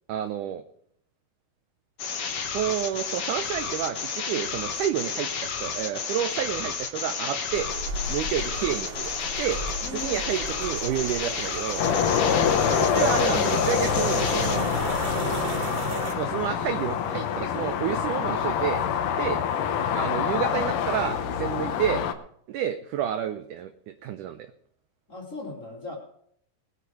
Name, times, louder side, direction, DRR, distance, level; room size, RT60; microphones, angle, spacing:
voice 1, 0.1-0.6 2.5-7.7 8.1-9.6 9.9-11.8 12.7-14.7 16.2-18.8 19.1-19.4 19.9-22.0 22.5-24.5, right 10 dB, 75° right, 9 dB, 1.9 m, -30 dB
sound 1, 2.0-14.6, left 6 dB, 55° left, 1.8 m, -32 dB
sound 2, 7.5-16.1, right 2 dB, 45° right, 3.3 m, -35 dB
voice 2, 9.8-10.1 12.3-12.6 19.3-19.5 25.1-26.0, left 3 dB, 20° left, -1 dB, 2.7 m, -37 dB
sound 3, 11.8-22.1, left 8 dB, 70° left, 2.2 m, -26 dB
20.5 x 8.4 x 4.8 m, 0.66 s
omnidirectional pair, 4.4 m